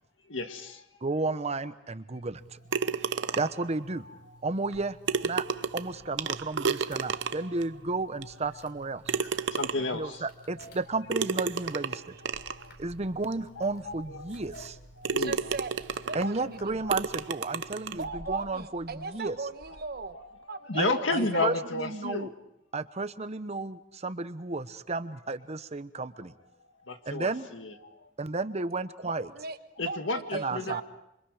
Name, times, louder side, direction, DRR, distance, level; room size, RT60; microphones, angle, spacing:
voice 1, 0.3-0.9 2.8-3.3 4.1-4.2 7.1-7.6 9.5-10.2 10.6-10.7 12.3-12.7 13.6-14.7 15.0-15.5 16.8-16.9 18.1-18.3 20.1-22.3 26.6-28.1 29.8-30.8, left 3 dB, 90° left, 7 dB, 1.9 m, -34 dB
voice 2, 1.0-2.6 3.0-4.1 4.4-5.0 5.2-5.4 5.7-9.2 9.9-12.2 12.8-14.8 16.1-19.4 20.8-22.3 22.7-26.3 27.1-27.5 28.2-29.3 30.4-30.8, right 3 dB, 35° right, 12 dB, 0.9 m, -33 dB
sound 1, 2.7-3.7 4.7-4.8 5.1-7.6 8.2-8.3 9.1-10.0 11.1-12.6 13.3-13.4 13.9-14.0 14.6-14.8 15.0-16.4 16.9-18.0, right 5 dB, 70° right, 0.8 m, -31 dB
sound 2, 4.9-20.3, left 1 dB, 60° left, 4.5 m, -56 dB
voice 3, 15.2-15.7 16.0-16.8 17.9-20.2 20.5-21.6 29.0-30.8, right 4 dB, 55° right, 10 dB, 1.3 m, -38 dB
27.5 x 24.5 x 5.0 m, 0.83 s
head